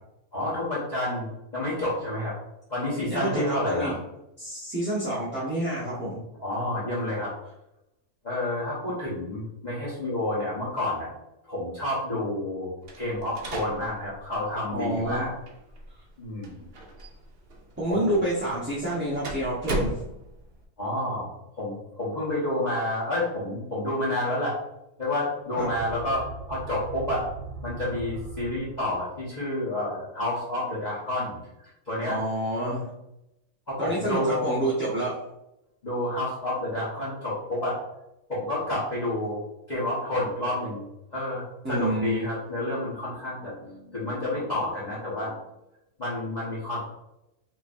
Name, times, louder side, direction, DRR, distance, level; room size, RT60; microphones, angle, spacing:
voice 1, 0.3-1.3 1.5-2.4 2.7-3.9 6.4-7.3 8.2-11.1 11.4-12.7 13.0-15.3 16.2-16.7 17.9-18.1 20.8-24.6 25.0-27.3 27.6-32.2 33.7-34.6 35.8-37.8 38.3-39.4 39.7-40.8 41.1-45.4 46.0-46.8, left 1 dB, 30° left, -8 dB, 1.2 m, -29 dB
voice 2, 3.1-4.0 4.4-6.2 14.7-15.3 17.8-20.0 25.6-25.7 32.1-32.9 33.8-35.2 41.6-42.2, right 1 dB, 10° right, -10 dB, 0.9 m, -28 dB
sound 1, 12.8-20.6, right 1 dB, 50° right, 0.8 m, -38 dB
sound 2, 25.5-29.3, right 4 dB, 80° right, 0.5 m, -40 dB
5.1 x 3.0 x 2.6 m, 0.87 s
omnidirectional pair, 1.6 m